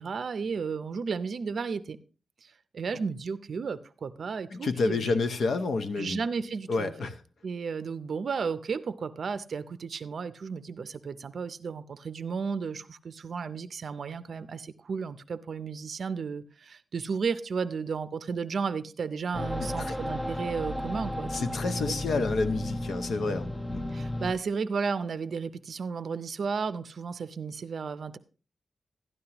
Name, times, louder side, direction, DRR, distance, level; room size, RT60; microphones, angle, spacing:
voice 1, 0.0-2.0 2.4-5.1 6.0-6.9 7.4-21.3 23.9-28.2, right 5 dB, 60° right, 13 dB, 0.5 m, -33 dB
voice 2, 4.5-6.2 6.7-7.2 19.6-20.0 21.3-23.9, left 3 dB, 75° left, 8 dB, 0.9 m, -29 dB
sound 1, 19.3-24.3, left 1 dB, 10° left, 0.5 m, -33 dB
12.0 x 11.0 x 2.9 m, 0.36 s
wide cardioid pair, 170°, 0 cm